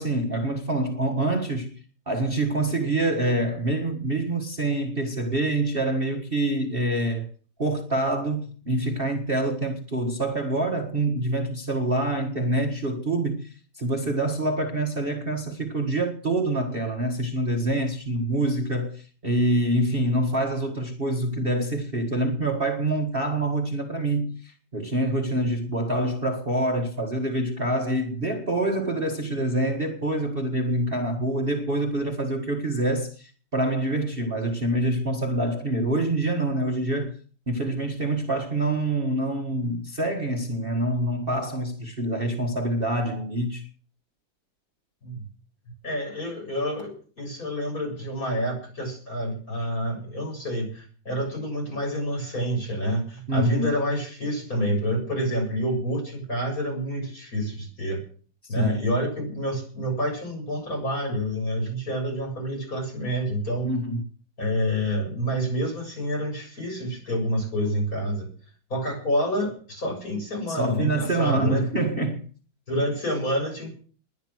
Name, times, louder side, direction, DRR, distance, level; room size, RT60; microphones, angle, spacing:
voice 1, 0.0-1.7 2.1-7.3 7.6-37.2 37.5-43.7 53.3-53.7 58.5-58.8 63.6-64.0 70.5-72.3, right 1 dB, 30° right, 1.7 m, -26 dB
voice 2, 45.8-58.0 58.5-63.7 64.4-68.3 68.7-71.7 72.7-73.7, equal, 45° left, 8.0 m, -28 dB
21.0 x 9.9 x 6.3 m
omnidirectional pair, 2.1 m